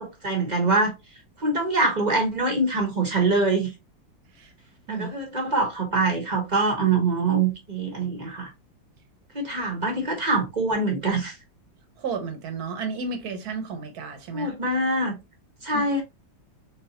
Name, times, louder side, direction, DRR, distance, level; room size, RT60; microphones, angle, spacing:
voice 1, 0.0-0.9 1.4-3.7 4.9-8.5 9.3-11.3 14.3-15.2 15.6-16.0, right 3 dB, 30° right, 0.9 m, -24 dB
voice 2, 12.0-14.5 15.7-15.9, right 5 dB, 60° right, 1.3 m, -32 dB
3.9 x 3.5 x 2.7 m
omnidirectional pair, 2.1 m